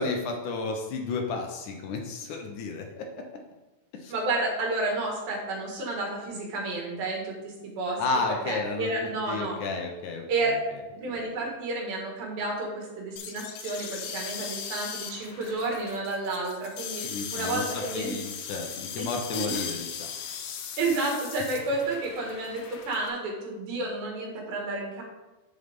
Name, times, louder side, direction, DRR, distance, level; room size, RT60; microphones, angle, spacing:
voice 1, 0.0-3.0 4.0-4.1 8.0-8.9 9.3-10.2 17.0-20.3 20.6-20.7, left 3 dB, 70° left, 2 dB, 2.2 m, -32 dB
voice 2, 4.1-8.0 8.5-9.6 10.3-10.6 10.9-17.0 17.3-18.2 19.0-19.6 20.8-25.0, right 2 dB, 90° right, -1 dB, 3.7 m, -31 dB
sound 1, 13.2-23.1, left 7 dB, 85° left, 2.8 m, -38 dB
9.0 x 7.9 x 3.7 m, 1.1 s
omnidirectional pair, 4.0 m